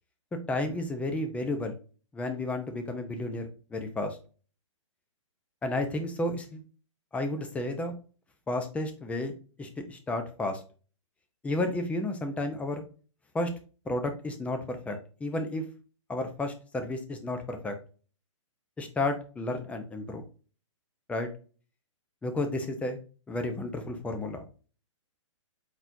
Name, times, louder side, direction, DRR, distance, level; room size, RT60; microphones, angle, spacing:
voice 1, 0.5-1.8 2.1-4.2 5.6-6.6 7.1-7.9 8.5-9.3 9.6-10.6 11.4-12.8 13.3-13.5 13.9-15.6 16.1-17.8 18.8-20.2 21.1-21.3 22.2-23.0 23.3-24.4, left 2 dB, 10° left, 6 dB, 0.7 m, -32 dB
4.5 x 4.0 x 2.6 m, 0.37 s
hypercardioid pair, 135°, 17 cm